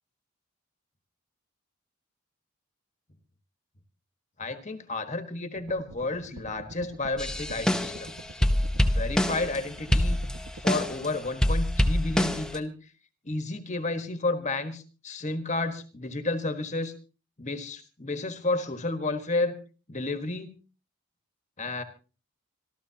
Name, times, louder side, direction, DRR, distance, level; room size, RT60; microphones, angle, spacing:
voice 1, 4.4-8.1 8.9-10.2 10.6-12.7 13.2-16.9 17.4-19.6 19.9-20.5 21.6-21.8, left 2 dB, 35° left, 8 dB, 1.5 m, -31 dB
sound 1, 5.6-11.3, right 2 dB, 90° right, 1.6 m, -47 dB
sound 2, 7.2-8.1 8.4-9.6 9.9-11.1 11.4-12.6, left 1 dB, 5° left, 0.9 m, -25 dB
26.0 x 13.5 x 2.8 m, 0.34 s
head